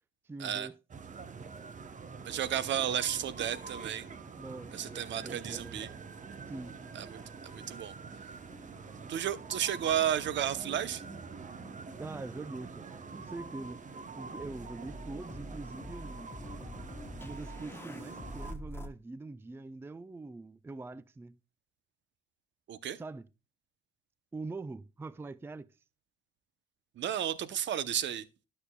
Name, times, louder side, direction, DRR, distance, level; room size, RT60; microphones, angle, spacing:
voice 1, 0.2-0.8 4.4-5.8 6.5-6.8 12.0-16.3 17.2-21.4 23.0-23.3 24.3-25.7, right 3 dB, 10° right, 0.4 m, -44 dB
sound 1, 0.9-18.5, right 5 dB, 40° right, 0.9 m, -46 dB
voice 2, 2.2-4.0 4.7-5.9 6.9-7.9 9.1-11.0 22.7-23.0 27.0-28.2, right 10 dB, 65° right, 0.8 m, -33 dB
sound 2, 4.4-6.0 6.3-7.7 8.4-18.9, left 1 dB, 10° left, 0.9 m, -49 dB
12.0 x 6.7 x 2.3 m
cardioid pair, 90°, 20 cm